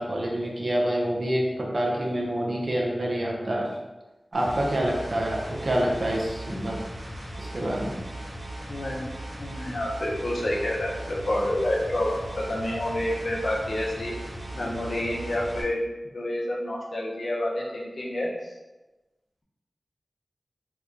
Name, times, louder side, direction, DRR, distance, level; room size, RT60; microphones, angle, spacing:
voice 1, 0.0-3.7 4.3-6.8 7.4-8.0, right 1 dB, 60° right, -2 dB, 0.7 m, -27 dB
sound 1, 4.3-15.6, right 1 dB, 85° right, 1.0 m, -38 dB
voice 2, 8.7-9.1 9.4-10.9 11.3-12.1 12.5-14.1 14.5-15.8 16.1-18.3, left 1 dB, 75° left, -3 dB, 0.7 m, -28 dB
3.0 x 2.3 x 3.8 m, 1.1 s
cardioid pair, 45°, 0 cm